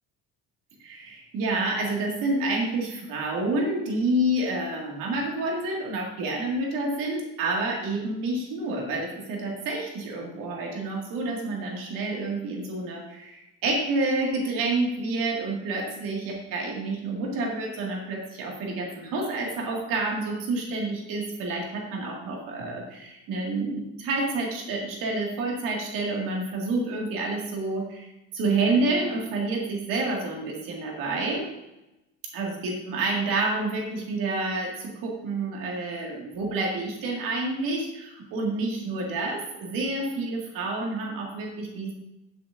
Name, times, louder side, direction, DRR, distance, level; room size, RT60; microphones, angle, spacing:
voice 1, 0.8-31.5 32.3-41.9, right 2 dB, 80° right, -1 dB, 2.2 m, -29 dB
9.1 x 7.6 x 2.7 m, 0.95 s
cardioid pair, 130°, 33 cm